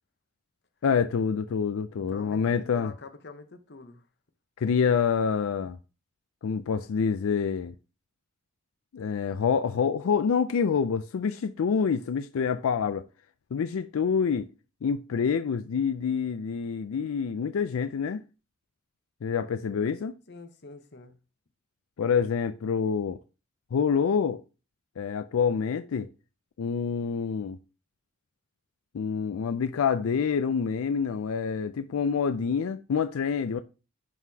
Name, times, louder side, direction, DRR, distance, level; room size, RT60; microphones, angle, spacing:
voice 1, 0.8-2.9 4.6-5.8 6.4-7.7 8.9-13.0 13.5-14.5 14.8-18.2 19.2-20.1 22.0-23.2 23.7-24.4 25.0-26.1 26.6-27.6 28.9-33.6, left 6 dB, 85° left, 0.4 m, -27 dB
voice 2, 2.0-4.0 20.3-21.2, left 3 dB, 50° left, 0.9 m, -46 dB
10.5 x 3.8 x 2.8 m
head